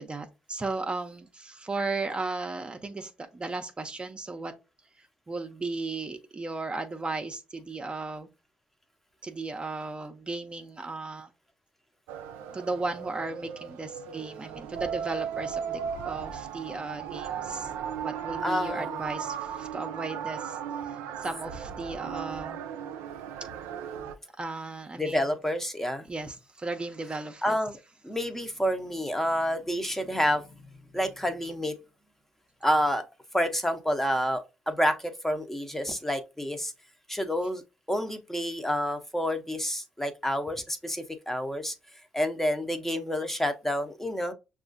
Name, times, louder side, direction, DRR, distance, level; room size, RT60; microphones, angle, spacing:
voice 1, 0.0-4.5 5.3-8.3 9.2-11.3 12.5-17.7 18.0-20.6 21.2-22.6 24.4-25.2 26.1-27.6, right 3 dB, 25° right, 0.5 m, -35 dB
sound 1, 12.1-24.1, right 8 dB, 85° right, 0.4 m, -36 dB
voice 2, 18.4-19.0 25.0-26.1 27.4-27.8 28.0-30.7 30.9-31.8 32.6-33.0 33.3-36.7 37.1-37.6 37.9-41.7 42.1-44.3, equal, 10° left, 0.7 m, -29 dB
5.9 x 2.4 x 2.5 m
supercardioid pair, 60°, 4 cm